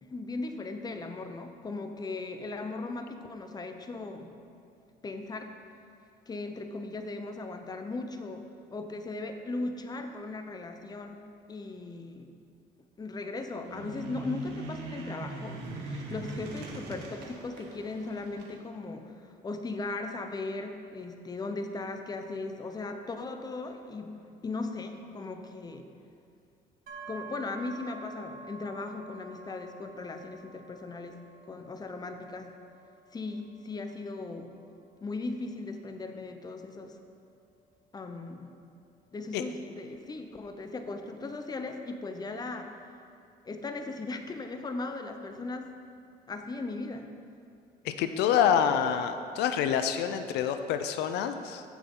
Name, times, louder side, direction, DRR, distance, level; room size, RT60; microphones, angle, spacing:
voice 1, 0.0-4.3 5.0-5.6 6.3-11.2 11.5-12.3 13.0-25.9 27.1-31.2 31.5-32.5 33.1-34.5 35.0-37.0 37.9-38.5 39.1-42.7 43.4-45.7 46.3-47.1, left 3 dB, 25° left, 6 dB, 0.8 m, -38 dB
sound 1, 13.6-18.5, right 2 dB, 80° right, 1.5 m, -41 dB
sound 2, 26.9-40.6, right 3 dB, 55° right, 1.8 m, -51 dB
voice 2, 47.8-51.6, left 8 dB, 85° left, 9 dB, 0.5 m, -27 dB
15.5 x 6.1 x 3.8 m, 2.5 s
cardioid pair, 110°, 17 cm